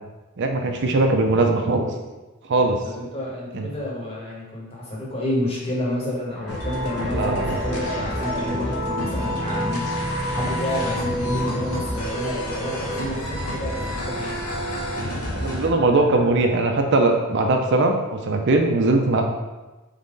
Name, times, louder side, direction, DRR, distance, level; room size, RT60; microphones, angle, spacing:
voice 1, 0.4-1.8 2.5-2.8 3.5-3.7 7.1-7.6 15.4-19.2, right 2 dB, 50° right, 3 dB, 0.5 m, -20 dB
voice 2, 2.8-9.9 10.3-14.4, left 1 dB, 25° left, -4 dB, 1.0 m, -29 dB
sound 1, 6.3-16.9, equal, ahead, 0.5 m, -33 dB
sound 2, 6.5-15.7, equal, 85° left, 0.9 m, -29 dB
3.9 x 3.6 x 3.7 m, 1.1 s
head